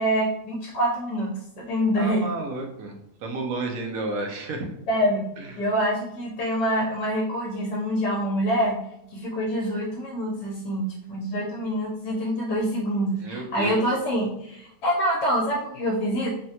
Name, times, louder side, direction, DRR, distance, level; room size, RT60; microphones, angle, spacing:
voice 1, 0.0-2.3 4.9-5.2 5.6-8.8 9.1-16.3, equal, 75° left, -3 dB, 1.2 m, -26 dB
voice 2, 2.0-2.9 3.2-4.7 5.4-5.7 13.2-13.8, right 2 dB, 70° right, 3 dB, 0.8 m, -31 dB
3.5 x 2.1 x 2.7 m, 0.79 s
omnidirectional pair, 1.9 m